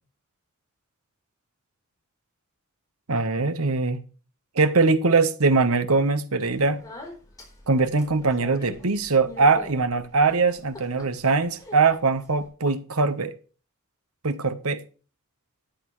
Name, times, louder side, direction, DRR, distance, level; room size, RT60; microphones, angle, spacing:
voice 1, 3.1-4.0 4.6-6.8 7.7-13.3 14.2-14.8, right 4 dB, 80° right, 1.1 m, -22 dB
Speech, 6.4-12.5, left 2 dB, 15° left, 3.9 m, -45 dB
13.0 x 9.3 x 3.2 m
head